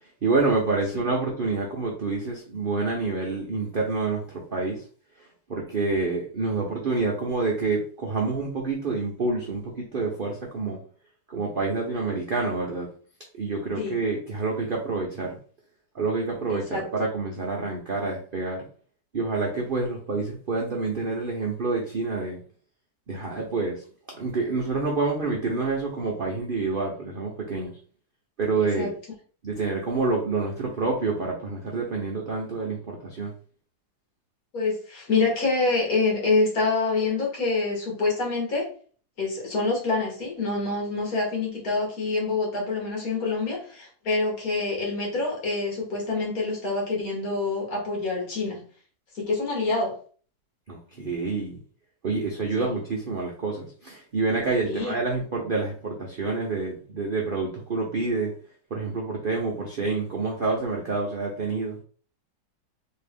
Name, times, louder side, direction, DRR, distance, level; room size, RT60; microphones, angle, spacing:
voice 1, 0.2-4.8 5.5-10.8 11.3-12.9 13.3-15.4 15.9-18.6 19.1-22.4 23.1-23.8 24.2-27.7 28.4-28.9 29.4-33.3 50.7-51.6 52.0-58.3 58.7-61.8, right 3 dB, 70° right, -1 dB, 0.5 m, -27 dB
voice 2, 16.5-16.8 28.6-28.9 34.5-38.7 39.2-48.6 49.1-50.0 52.6-52.7 54.6-55.0, left 3 dB, 55° left, -2 dB, 1.8 m, -26 dB
3.6 x 2.9 x 3.4 m, 0.43 s
omnidirectional pair, 2.0 m